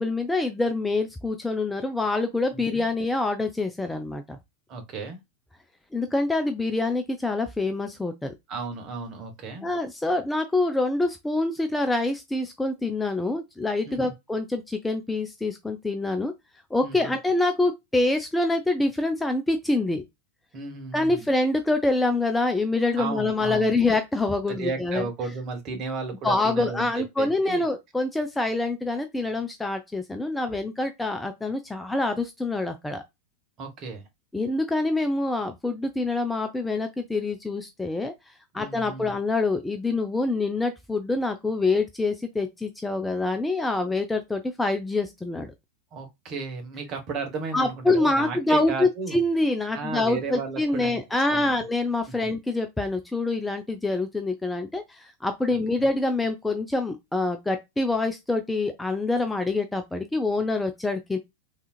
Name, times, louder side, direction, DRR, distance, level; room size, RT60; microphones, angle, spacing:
voice 1, 0.0-4.4 5.9-8.3 9.6-16.3 16.7-20.0 20.9-25.1 26.2-33.0 34.3-45.5 47.5-61.2, left 2 dB, 5° left, 0.4 m, -26 dB
voice 2, 2.5-2.8 4.7-5.2 8.5-9.7 13.9-14.1 16.8-17.2 20.5-21.3 23.0-23.7 24.5-26.9 27.2-27.6 33.6-34.0 38.5-39.2 45.9-49.2 49.7-51.0 51.3-51.6 52.2-52.3 55.5-55.9, right 4 dB, 35° right, 1.2 m, -34 dB
3.6 x 2.8 x 2.3 m
figure-of-eight pair, 90°, 0 cm